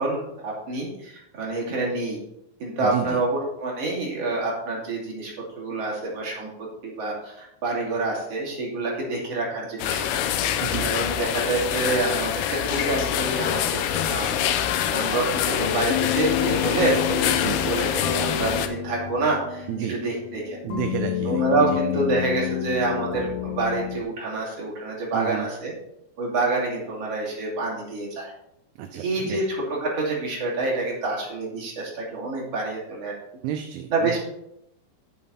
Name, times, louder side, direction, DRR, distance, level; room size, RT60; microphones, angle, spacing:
voice 1, 0.0-2.2 2.6-10.1 10.8-13.6 13.9-20.6 21.3-25.7 26.2-28.3 28.9-33.1 33.9-34.3, right 3 dB, 40° right, -4 dB, 3.1 m, -27 dB
voice 2, 2.8-3.2 10.6-10.9 17.3-17.7 19.7-20.0 20.6-21.8 25.1-25.5 28.8-29.5 33.4-34.2, right 10 dB, 80° right, 6 dB, 2.2 m, -31 dB
sound 1, 9.8-18.7, left 10 dB, 85° left, 2.3 m, -25 dB
sound 2, 14.6-24.0, left 11 dB, 70° left, 2.6 m, -29 dB
8.2 x 7.7 x 4.2 m, 0.81 s
omnidirectional pair, 4.9 m